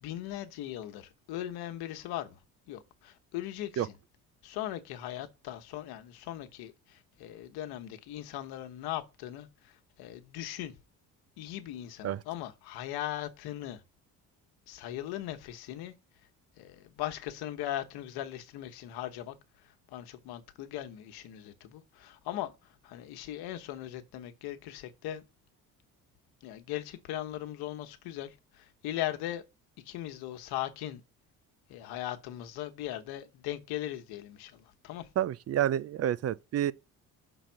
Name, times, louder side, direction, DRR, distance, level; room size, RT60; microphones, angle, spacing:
voice 1, 0.0-2.4 2.7-4.0 4.4-10.8 11.4-13.8 14.7-15.9 16.6-19.3 19.6-25.2 26.4-29.4 29.8-31.0 31.7-35.1, left 13 dB, 85° left, 1.1 m, -39 dB
voice 2, 35.2-36.7, right 11 dB, 45° right, 0.4 m, -29 dB
6.2 x 4.0 x 5.8 m
cardioid pair, 85°, 37 cm